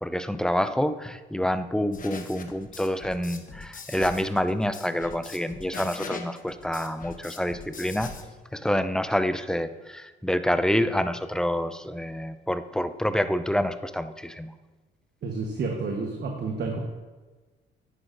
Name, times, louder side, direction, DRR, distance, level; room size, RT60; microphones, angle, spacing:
voice 1, 0.0-8.1 8.5-14.5, equal, 5° left, 11 dB, 0.4 m, -27 dB
sound 1, 1.9-8.3, left 5 dB, 45° left, 1.0 m, -41 dB
voice 2, 15.2-16.8, right 4 dB, 55° right, 1 dB, 1.1 m, -30 dB
9.9 x 9.7 x 2.6 m, 1.3 s
cardioid pair, 90°, 20 cm